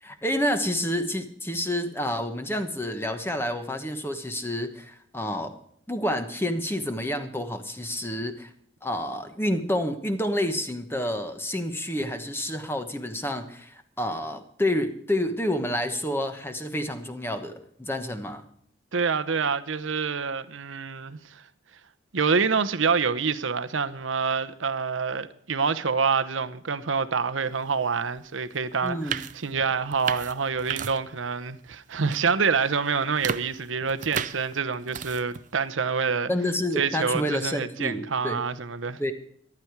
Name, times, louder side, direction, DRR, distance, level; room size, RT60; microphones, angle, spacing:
voice 1, 0.0-5.5 5.9-8.5 8.8-18.4 28.8-29.2 36.3-38.4 39.0-39.1, left 1 dB, 10° left, 1.1 m, -29 dB
voice 2, 18.9-21.4 22.1-36.3 36.8-39.0, right 5 dB, 80° right, 0.8 m, -27 dB
sound 1, 28.2-28.3 28.7-31.3 31.6-32.2 32.6-35.5, right 7 dB, 40° right, 0.5 m, -35 dB
14.5 x 12.0 x 4.7 m
head